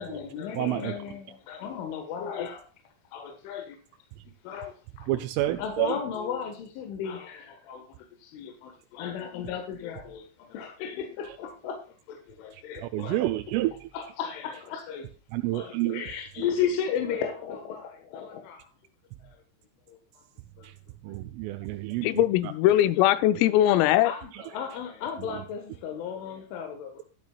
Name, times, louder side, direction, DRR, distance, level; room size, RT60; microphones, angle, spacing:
voice 1, 0.0-2.7 3.1-3.8 4.4-13.2 13.9-15.1 15.4-18.7 19.2-19.4 19.9-20.0 20.6-20.7 21.1-21.5 23.6-27.0, left 7 dB, 75° left, 3.8 m, -35 dB
voice 2, 0.6-0.9 5.1-5.9 12.9-13.7 15.3-16.0 21.0-22.2, right 16 dB, 85° right, 3.2 m, -28 dB
voice 3, 22.0-24.1, left 13 dB, 90° left, 3.4 m, -21 dB
12.5 x 12.0 x 2.3 m
omnidirectional pair, 5.8 m